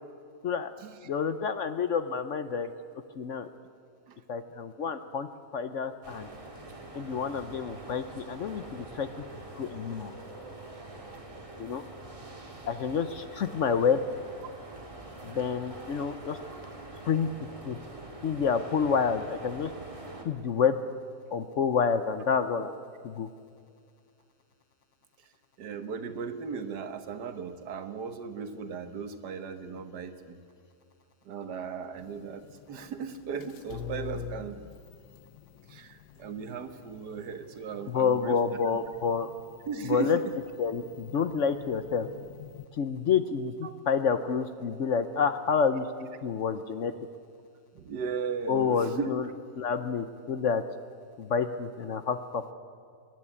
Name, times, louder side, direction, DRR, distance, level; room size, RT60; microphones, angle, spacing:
voice 1, 1.0-2.7 3.2-3.5 4.3-6.3 6.9-9.1 9.6-10.1 11.6-11.8 12.7-14.0 15.2-16.4 17.0-17.3 17.6-17.8 18.2-19.7 20.2-20.8 21.3-22.7 23.0-23.3 37.9-39.3 39.8-40.2 40.6-42.1 42.8-46.9 48.5-49.3 49.6-50.6 51.2-52.5, left 6 dB, 60° left, 10 dB, 0.9 m, -28 dB
sound 1, 6.0-20.3, right 2 dB, 20° right, 2.0 m, -45 dB
voice 2, 25.6-30.4 31.3-34.6 35.7-38.6 39.7-40.3 43.6-43.7 47.8-49.1, right 6 dB, 80° right, 9 dB, 1.7 m, -37 dB
sound 2, 32.0-42.7, left 8 dB, 75° left, 1.3 m, -46 dB
24.5 x 11.0 x 9.8 m, 2.3 s
omnidirectional pair, 1.8 m